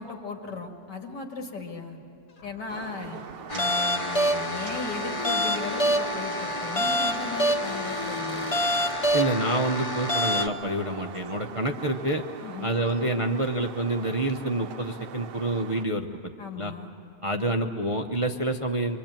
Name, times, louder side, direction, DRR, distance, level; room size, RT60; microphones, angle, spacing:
voice 1, 0.0-2.0 2.4-3.2 3.5-8.5 12.4-12.8 16.4-16.9, left 4 dB, 85° left, 2 dB, 2.8 m, -37 dB
Cupboard open or close, 2.3-9.0, left 3 dB, 70° left, 2.5 m, -48 dB
sound 1, 2.7-15.8, right 8 dB, 90° right, 1.5 m, -42 dB
sound 2, 3.5-10.5, equal, 25° left, 0.8 m, -26 dB
voice 2, 9.1-12.2 12.6-16.3 16.6-16.7 17.2-19.0, right 2 dB, 30° right, 4 dB, 0.6 m, -27 dB
25.0 x 24.0 x 9.0 m, 2.6 s
omnidirectional pair, 1.8 m